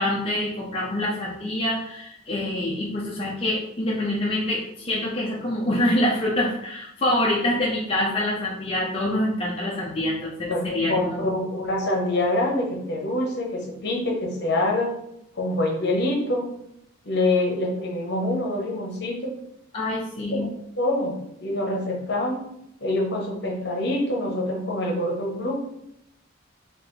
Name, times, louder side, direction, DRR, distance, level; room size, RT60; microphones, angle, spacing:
voice 1, 0.0-11.2 19.7-20.5, left 1 dB, 30° left, -4 dB, 0.5 m, -26 dB
voice 2, 10.5-14.9 15.3-16.5 17.0-19.3 20.3-20.5 20.8-21.2 21.4-22.5 22.8-25.6, left 1 dB, 55° left, 0 dB, 0.9 m, -25 dB
3.9 x 2.9 x 3.2 m, 0.78 s
head